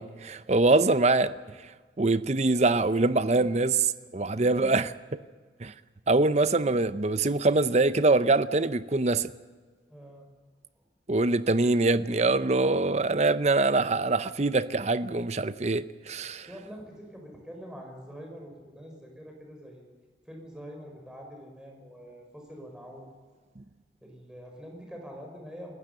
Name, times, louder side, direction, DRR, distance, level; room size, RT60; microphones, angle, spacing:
voice 1, 0.0-1.3 2.0-5.2 5.6-5.7 6.1-9.3 11.1-16.5, right 3 dB, 35° right, 0.6 m, -24 dB
voice 2, 9.9-10.3 16.5-19.8 20.3-23.0 24.0-25.8, equal, 5° right, 5.0 m, -45 dB
28.5 x 15.5 x 6.7 m
head